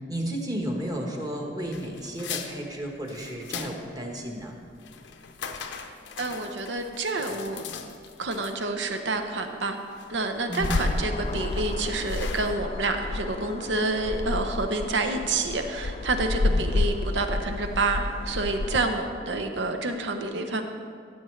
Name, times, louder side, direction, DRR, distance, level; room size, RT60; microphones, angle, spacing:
voice 1, 0.0-4.5 10.5-11.0 16.4-16.6, right 1 dB, 20° right, 1 dB, 1.2 m, -33 dB
sound 1, 1.7-12.5, left 6 dB, 80° left, 0.7 m, -40 dB
voice 2, 6.2-7.6 8.2-9.8 10.1-20.6, right 2 dB, 75° right, 6 dB, 0.8 m, -28 dB
sound 2, 10.6-19.0, left 2 dB, 35° left, 0.3 m, -30 dB
14.5 x 8.0 x 3.2 m, 2.2 s
head